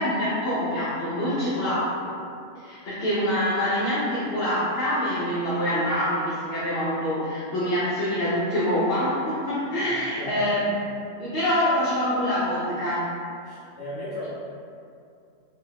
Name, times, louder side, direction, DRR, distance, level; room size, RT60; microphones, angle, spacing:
voice 1, 0.0-2.1 2.5-10.6 11.2-13.1, equal, 60° left, -9 dB, 0.7 m, -25 dB
voice 2, 9.8-10.4 13.4-14.3, left 1 dB, 20° left, -16 dB, 0.7 m, -37 dB
2.4 x 2.4 x 3.2 m, 2.4 s
omnidirectional pair, 1.3 m